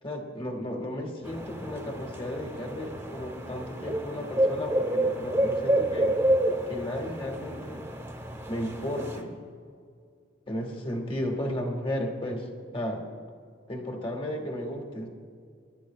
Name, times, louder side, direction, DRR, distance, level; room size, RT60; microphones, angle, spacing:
voice 1, 0.0-6.1 6.7-7.8 8.5-9.3 10.5-12.5 12.7-13.0 13.7-15.1, left 1 dB, 25° left, 3 dB, 1.6 m, -34 dB
sound 1, 1.2-9.2, right 1 dB, 10° right, 1.0 m, -29 dB
24.5 x 11.5 x 2.3 m, 2.2 s
head